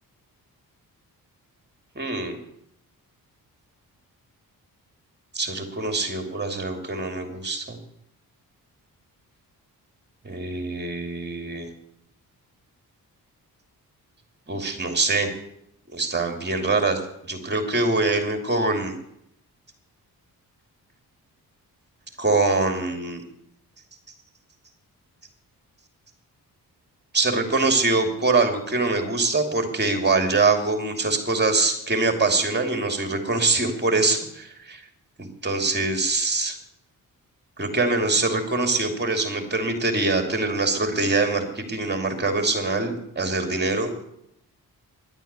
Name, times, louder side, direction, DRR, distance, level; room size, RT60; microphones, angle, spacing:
voice 1, 2.0-2.4 5.3-7.8 10.2-11.7 14.5-15.3 15.9-19.0 22.2-23.2 27.1-34.8 35.2-36.6 37.6-44.1, right 3 dB, 30° right, 5 dB, 2.7 m, -24 dB
11.5 x 9.0 x 8.2 m, 0.76 s
cardioid pair, 85°, 37 cm